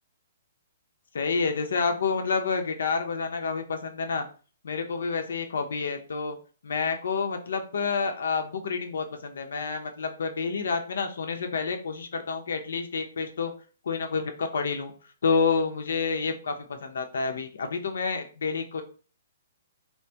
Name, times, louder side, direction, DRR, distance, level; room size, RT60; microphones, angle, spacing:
voice 1, 1.1-4.3 4.6-6.4 6.6-13.5 13.8-14.9 15.2-18.8, left 5 dB, 80° left, 5 dB, 0.5 m, -29 dB
2.9 x 2.2 x 2.7 m, 0.38 s
hypercardioid pair, 155°, 0 cm